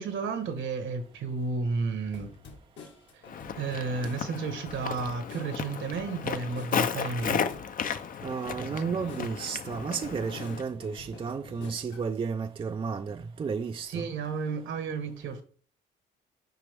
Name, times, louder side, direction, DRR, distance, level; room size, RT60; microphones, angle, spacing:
voice 1, 0.0-2.3 3.6-7.4 8.6-9.1 13.9-15.4, right 4 dB, 75° right, 1.3 m, -32 dB
sound 1, 2.1-12.1, left 4 dB, 70° left, 1.6 m, -48 dB
Walk footsteps, 3.3-10.6, left 7 dB, 45° left, 0.6 m, -34 dB
voice 2, 8.2-14.1, right 5 dB, 25° right, 0.4 m, -33 dB
6.7 x 5.0 x 3.5 m
cardioid pair, 90°, 20 cm